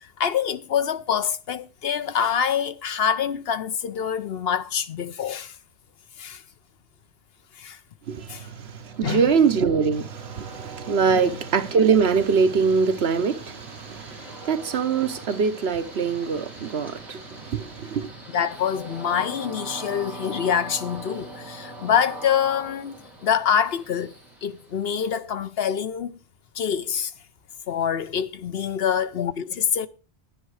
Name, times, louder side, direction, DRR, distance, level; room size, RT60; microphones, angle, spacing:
voice 1, 0.0-5.6 6.2-6.4 7.6-7.8 8.3-8.5 9.0-9.2 11.1-11.4 18.3-24.1 24.4-26.2 26.5-27.1 27.7-29.9, left 8 dB, 65° left, 0.9 m, -25 dB
voice 2, 8.1-18.1, right 5 dB, 65° right, 1.1 m, -23 dB
Train, 8.4-25.2, right 1 dB, ahead, 4.6 m, -42 dB
11.0 x 10.0 x 4.8 m
omnidirectional pair, 1.1 m